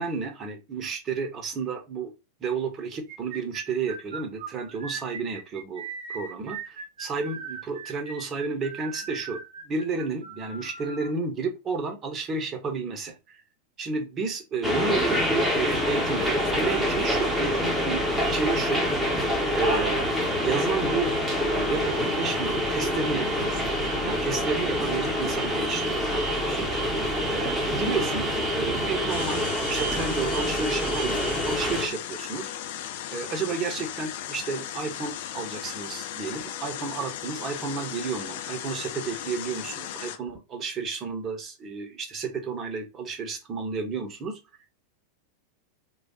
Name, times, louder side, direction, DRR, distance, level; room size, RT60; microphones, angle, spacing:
voice 1, 0.0-2.1 2.4-9.4 9.7-13.4 13.8-18.8 19.5-20.1 20.4-21.1 21.4-23.7 24.0-26.8 27.3-32.5 33.1-44.4, right 4 dB, 25° right, 4 dB, 0.7 m, -32 dB
sound 1, 3.1-11.1, right 5 dB, 60° right, 0.5 m, -39 dB
sound 2, 14.6-31.9, equal, ahead, 0.8 m, -26 dB
sound 3, 29.1-40.2, left 11 dB, 50° left, 0.4 m, -36 dB
3.1 x 2.3 x 2.7 m, 0.27 s
figure-of-eight pair, 90°, 0 cm